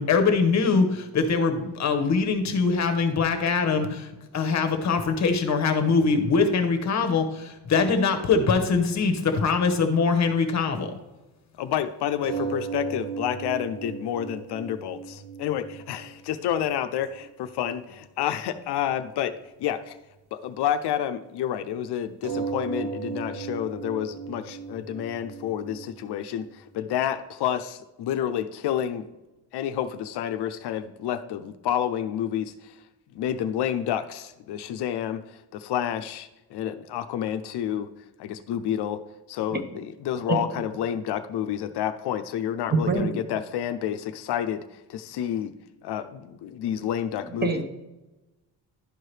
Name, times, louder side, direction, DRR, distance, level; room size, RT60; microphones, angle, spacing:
voice 1, 0.0-10.9, left 4 dB, 40° left, 6 dB, 0.9 m, -23 dB
voice 2, 11.6-20.0 20.3-29.1 29.5-32.8 33.1-37.9 38.2-39.0 39.3-45.5 45.8-47.6, left 10 dB, 70° left, 10 dB, 0.5 m, -29 dB
sound 1, 12.2-17.3 17.6-18.0 18.4-18.5 22.2-26.8, right 5 dB, 65° right, 1.3 m, -36 dB
voice 3, 42.7-43.2 47.4-47.6, right 4 dB, 25° right, 5 dB, 0.7 m, -24 dB
11.5 x 4.6 x 3.2 m, 1.0 s
cardioid pair, 155°, 42 cm